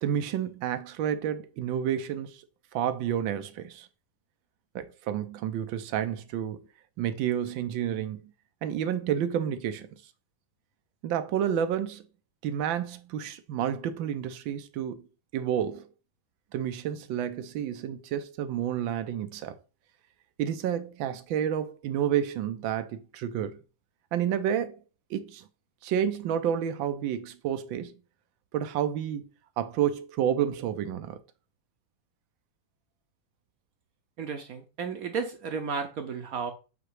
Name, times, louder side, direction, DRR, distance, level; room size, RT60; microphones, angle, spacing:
voice 1, 0.0-2.4 2.7-3.9 4.7-6.6 7.0-8.2 8.6-9.9 11.0-12.0 12.4-15.0 15.3-15.9 16.5-19.5 20.4-23.6 24.1-24.8 25.1-25.4 25.8-27.9 28.5-29.2 29.6-31.2, right 9 dB, 90° right, 1.4 m, -30 dB
voice 2, 34.2-36.5, right 5 dB, 65° right, 0.9 m, -33 dB
7.9 x 2.9 x 4.6 m
omnidirectional pair, 2.1 m